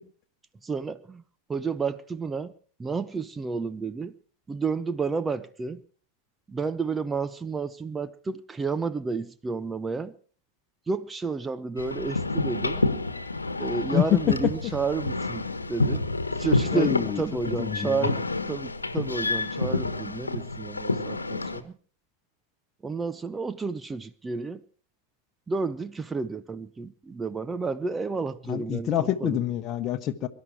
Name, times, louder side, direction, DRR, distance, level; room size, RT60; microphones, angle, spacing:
voice 1, 0.6-1.2 1.5-2.5 2.8-4.1 4.5-5.8 6.5-10.1 10.9-12.8 13.6-16.0 16.4-18.2 18.5-21.7 22.8-24.6 25.5-29.4, right 4 dB, 15° right, 0.7 m, -31 dB
sound 1, 11.8-21.6, left 3 dB, 80° left, 1.3 m, -29 dB
voice 2, 16.7-17.2 17.6-18.1 28.5-30.3, left 11 dB, 35° left, 1.1 m, -26 dB
23.0 x 12.0 x 4.6 m
figure-of-eight pair, 90°, 0 cm